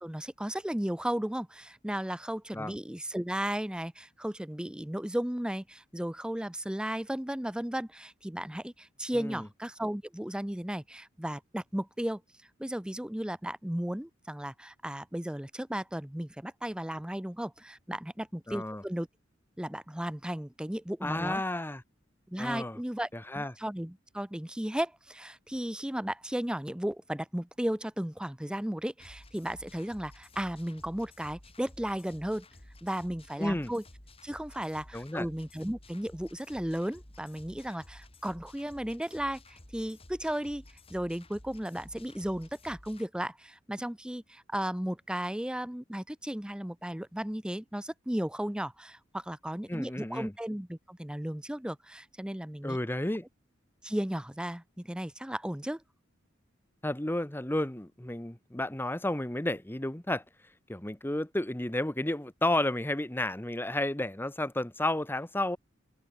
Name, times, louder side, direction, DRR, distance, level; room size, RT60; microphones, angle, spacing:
voice 1, 0.0-12.2 12.6-19.1 19.6-21.4 22.3-23.1 23.3-32.5 32.8-33.8 34.2-40.6 40.9-52.8 53.8-55.8, right 1 dB, 5° right, 0.6 m, -35 dB
voice 2, 9.1-9.5 18.5-18.8 21.0-21.8 22.4-22.8 23.1-23.5 33.4-33.7 34.9-35.3 49.7-50.3 52.6-53.2 56.8-60.2 60.7-65.6, left 1 dB, 10° left, 1.0 m, -32 dB
sound 1, 29.0-43.0, left 1 dB, 30° left, 4.2 m, -53 dB
head